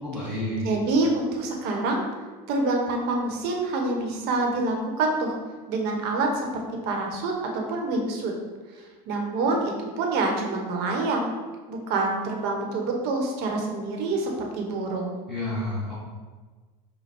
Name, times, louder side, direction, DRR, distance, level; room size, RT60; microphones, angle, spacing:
voice 1, 0.0-0.6 15.3-15.9, left 1 dB, ahead, -11 dB, 1.3 m, -30 dB
voice 2, 0.6-2.1 2.5-5.3 5.7-8.3 9.1-11.3 11.7-15.2, right 2 dB, 50° right, 1 dB, 1.0 m, -26 dB
5.2 x 2.2 x 4.4 m, 1.4 s
hypercardioid pair, 105°, 21 cm